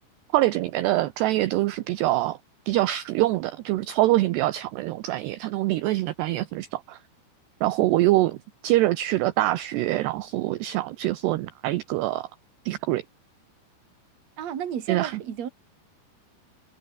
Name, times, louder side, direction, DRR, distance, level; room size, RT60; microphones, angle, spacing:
voice 1, 0.3-2.4 2.7-7.0 7.6-8.4 8.6-12.3 12.7-13.0 14.9-15.1, right 16 dB, 75° right, 2.8 m, -24 dB
voice 2, 14.4-15.5, right 9 dB, 45° right, 3.0 m, -32 dB
omnidirectional pair, 5.4 m